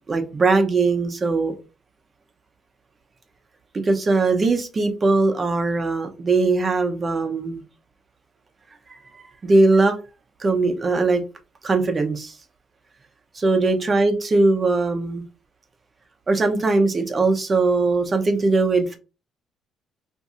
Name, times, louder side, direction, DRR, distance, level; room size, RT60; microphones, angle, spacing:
voice 1, 0.1-1.5 3.8-7.6 8.9-9.0 9.4-9.9 10.4-11.2 11.6-12.3 13.3-15.2 16.3-19.0, right 3 dB, 35° right, 6 dB, 0.7 m, -20 dB
2.6 x 2.4 x 4.1 m, 0.32 s
cardioid pair, 90°, 0 cm